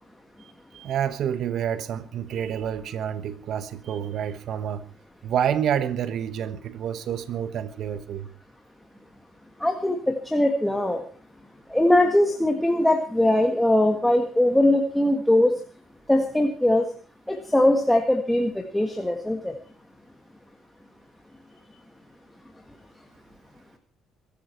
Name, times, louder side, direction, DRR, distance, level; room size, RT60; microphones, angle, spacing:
voice 1, 0.4-4.8 5.2-8.3, right 9 dB, 55° right, 1.2 m, -28 dB
voice 2, 9.6-11.0 11.7-15.5 16.1-16.8 17.3-19.5, left 1 dB, 5° left, 1.6 m, -21 dB
22.5 x 13.0 x 4.5 m
cardioid pair, 155°, 0 cm